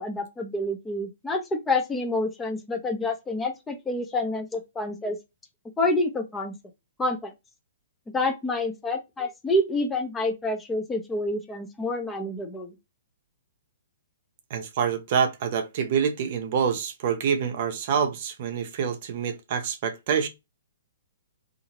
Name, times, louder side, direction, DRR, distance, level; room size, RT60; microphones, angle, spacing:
voice 1, 0.0-5.2 5.8-6.5 7.0-7.3 8.1-12.7, left 2 dB, 10° left, 0.5 m, -28 dB
voice 2, 14.5-20.3, right 7 dB, 50° right, 0.6 m, -26 dB
2.7 x 2.5 x 2.8 m
hypercardioid pair, 125°, 0 cm